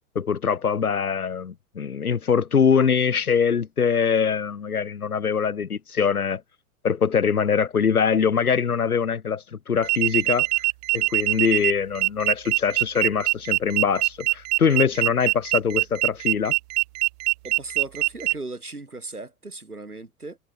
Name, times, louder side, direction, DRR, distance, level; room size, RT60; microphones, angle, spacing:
voice 1, 0.2-6.4 6.8-10.5 10.9-16.5, left 6 dB, 80° left, 2.2 m, -23 dB
sound 1, 9.8-18.3, right 23 dB, 30° right, 0.4 m, -23 dB
voice 2, 17.4-20.4, right 2 dB, 90° right, 5.6 m, -37 dB
figure-of-eight pair, 95°, 43 cm